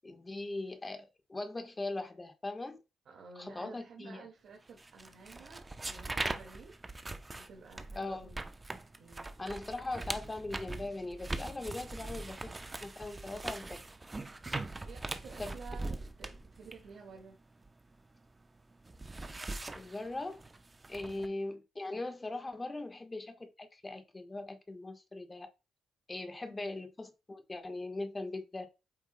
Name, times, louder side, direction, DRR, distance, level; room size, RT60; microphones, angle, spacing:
voice 1, 0.0-2.8 3.3-4.2 7.9-8.3 9.4-12.5 12.8-13.8 15.4-15.5 19.7-20.4 20.9-25.5 26.1-28.7, left 2 dB, 20° left, 1.3 m, -40 dB
voice 2, 3.1-6.7 7.3-8.3 9.0-9.3 14.3-14.4 14.9-17.4 21.0-21.3 26.4-26.7, right 4 dB, 65° right, 1.9 m, -52 dB
sound 1, 4.8-18.3 18.6-21.3, right 2 dB, 20° right, 0.7 m, -41 dB
8.0 x 5.8 x 2.2 m
cardioid pair, 90°, 0 cm